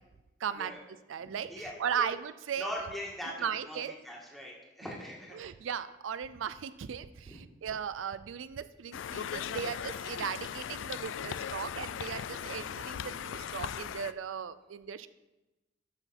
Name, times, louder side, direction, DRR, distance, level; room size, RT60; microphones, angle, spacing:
voice 1, 0.4-0.8 1.1-2.7 3.4-3.9 5.3-15.1, right 7 dB, 90° right, 14 dB, 0.4 m, -37 dB
voice 2, 1.5-2.1 2.6-5.5 7.3-7.4, equal, ahead, -3 dB, 1.8 m, -41 dB
Conversation, 8.9-14.1, left 8 dB, 80° left, 0.3 m, -38 dB
12.5 x 5.7 x 4.2 m, 1.0 s
head